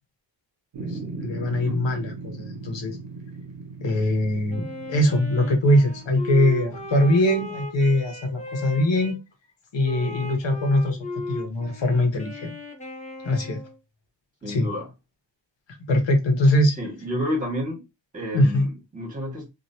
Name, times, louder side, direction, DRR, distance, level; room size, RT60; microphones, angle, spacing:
sound 1, 0.7-7.2, right 3 dB, 70° right, 0.9 m, -39 dB
voice 1, 0.8-3.0 3.8-9.2 9.7-11.0 11.3-12.5 13.2-13.6 14.5-14.7 15.9-16.7 18.3-18.7, left 1 dB, 75° left, 4 dB, 1.1 m, -22 dB
voice 2, 1.4-1.8 14.4-14.9 16.8-17.8 18.1-19.5, left 1 dB, 15° right, -2 dB, 1.8 m, -30 dB
Wind instrument woodwind instrument, 4.5-9.2 9.8-13.8, left 2 dB, 15° left, 1.0 m, -37 dB
3.1 x 2.6 x 2.7 m, 0.24 s
wide cardioid pair, 110°, 45 cm